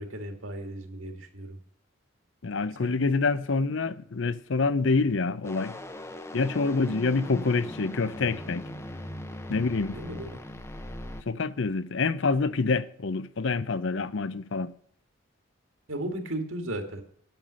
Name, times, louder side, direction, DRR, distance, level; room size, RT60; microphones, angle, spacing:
voice 1, 0.0-1.6 2.8-3.0 9.9-10.4 15.9-17.0, right 1 dB, 75° right, 2.0 m, -35 dB
voice 2, 2.4-5.7 6.3-8.6 9.5-9.9 11.3-14.7, left 4 dB, 65° left, 0.6 m, -26 dB
sound 1, 5.4-11.2, left 1 dB, 15° left, 0.6 m, -40 dB
9.2 x 9.0 x 6.3 m
head